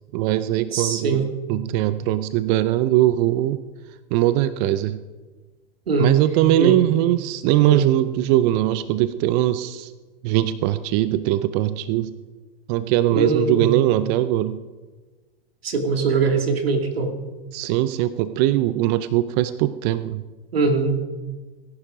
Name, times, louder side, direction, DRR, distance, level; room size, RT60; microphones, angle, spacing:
voice 1, 0.1-1.2 1.5-3.6 4.1-5.0 6.0-9.9 10.2-12.1 12.7-14.6 17.5-20.2, right 14 dB, 45° right, 13 dB, 0.6 m, -21 dB
voice 2, 0.7-1.3 5.9-6.2 6.6-6.8 7.7-7.8 13.1-13.8 15.6-17.1 20.5-21.0, right 4 dB, 85° right, 5 dB, 2.4 m, -21 dB
17.5 x 11.5 x 5.0 m, 1.3 s
hypercardioid pair, 110°, 29 cm